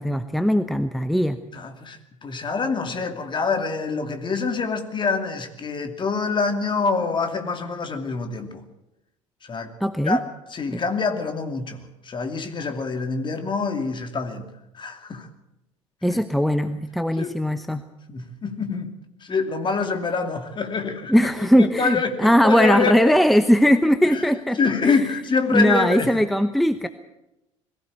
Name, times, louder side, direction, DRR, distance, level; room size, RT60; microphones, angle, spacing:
voice 1, 0.0-1.4 9.8-10.2 10.7-10.8 16.0-17.8 21.1-24.6 24.9-25.0 25.5-26.9, equal, ahead, 10 dB, 0.9 m, -19 dB
voice 2, 1.5-8.6 9.4-9.7 10.0-10.2 10.5-14.5 14.7-15.3 16.1-16.2 17.1-17.4 18.1-23.2 24.1-24.3 24.5-26.2, left 4 dB, 30° left, 6 dB, 2.6 m, -26 dB
21.5 x 15.5 x 8.2 m, 0.93 s
figure-of-eight pair, 65°, 16 cm